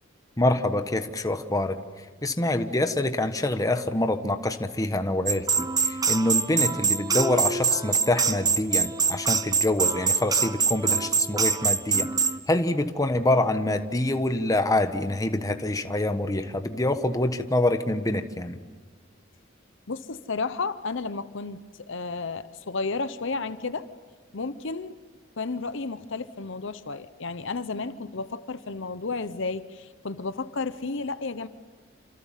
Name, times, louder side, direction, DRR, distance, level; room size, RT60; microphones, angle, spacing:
voice 1, 0.4-1.8 2.2-5.4 5.8-12.1 12.5-18.6, left 1 dB, 20° left, 8 dB, 1.2 m, -26 dB
sound 1, 5.3-12.4, right 5 dB, 20° right, 0.9 m, -24 dB
voice 2, 19.9-23.9 24.3-25.0 25.4-31.5, left 4 dB, 65° left, 13 dB, 0.9 m, -32 dB
28.5 x 26.5 x 7.5 m, 1.4 s
head